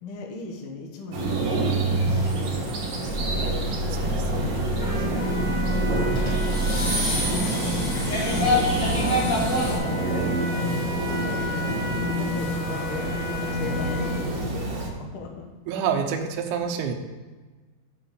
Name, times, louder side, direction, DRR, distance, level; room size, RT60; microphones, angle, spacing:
voice 1, 0.0-1.7 2.1-4.5 4.9-5.3 6.3-8.7 8.9-15.5, left 3 dB, 80° left, 2 dB, 1.2 m, -39 dB
sound 1, 1.1-14.9, right 1 dB, 55° right, 2.2 m, -27 dB
sound 2, 3.1-9.8, equal, 40° left, 2.0 m, -26 dB
voice 2, 3.9-4.6 15.7-16.9, right 7 dB, 75° right, 4 dB, 2.0 m, -28 dB
Trumpet, 4.8-14.3, left 2 dB, 5° right, 1.0 m, -37 dB
7.0 x 5.9 x 7.0 m, 1.3 s
omnidirectional pair, 4.2 m